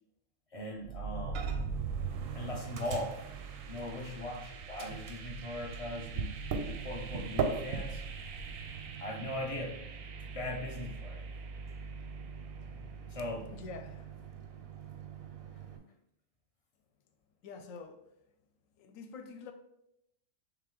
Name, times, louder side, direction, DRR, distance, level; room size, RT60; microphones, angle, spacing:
voice 1, 0.5-1.6 2.3-3.2 3.6-8.0 9.0-9.8 10.3-11.2 12.6-13.5, left 1 dB, 45° left, 0.4 m, -40 dB
sound 1, 0.8-12.7, right 5 dB, 80° right, 1.0 m, -42 dB
Microwave oven, 1.3-1.8 2.1-4.4 4.8-15.8, right 5 dB, 60° right, 0.7 m, -41 dB
voice 2, 13.5-14.3 17.4-18.0 18.8-19.5, left 4 dB, 80° left, 1.0 m, -47 dB
3.8 x 3.3 x 3.6 m
omnidirectional pair, 1.4 m